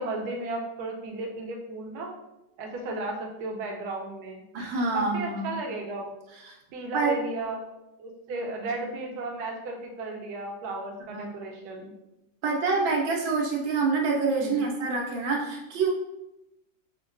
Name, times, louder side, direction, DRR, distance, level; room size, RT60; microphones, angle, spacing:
voice 1, 0.0-2.1 2.6-4.4 4.9-6.2 6.7-7.6 8.0-11.9 14.4-14.7, right 2 dB, 65° right, 1 dB, 1.1 m, -34 dB
voice 2, 4.5-5.5 6.5-6.6 6.9-7.1 11.1-11.3 12.4-15.9, right 4 dB, 85° right, -1 dB, 1.5 m, -26 dB
6.0 x 2.2 x 2.5 m, 0.94 s
omnidirectional pair, 2.1 m